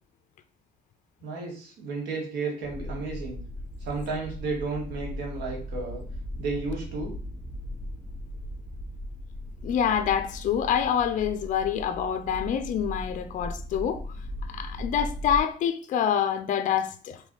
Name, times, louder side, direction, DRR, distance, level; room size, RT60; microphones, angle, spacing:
voice 1, 1.2-3.4 3.8-6.0 6.4-7.1, right 3 dB, 85° right, 1.7 m, -33 dB
sound 1, 2.6-15.4, equal, 5° left, 1.1 m, -38 dB
voice 2, 9.6-14.0 14.5-17.2, left 8 dB, 50° left, 0.5 m, -26 dB
4.0 x 3.2 x 3.7 m
cardioid pair, 110°, 17 cm